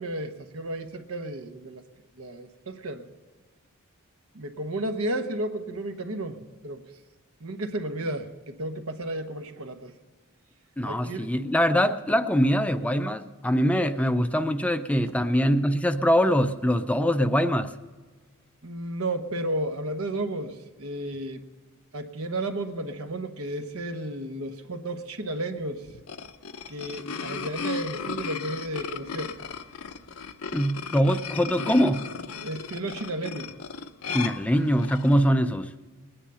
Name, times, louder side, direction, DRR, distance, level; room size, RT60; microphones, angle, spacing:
voice 1, 0.0-1.8 2.2-3.0 4.3-6.8 7.4-9.9 10.9-11.3 15.0-15.1 18.6-21.4 21.9-25.9 26.7-29.3 32.4-33.5, right 1 dB, 75° right, 7 dB, 1.1 m, -33 dB
voice 2, 10.8-17.7 30.5-32.0 34.1-35.7, equal, 5° left, 10 dB, 0.4 m, -23 dB
sound 1, 25.9-35.2, left 5 dB, 75° left, 0.7 m, -36 dB
20.0 x 10.0 x 5.6 m, 1.4 s
head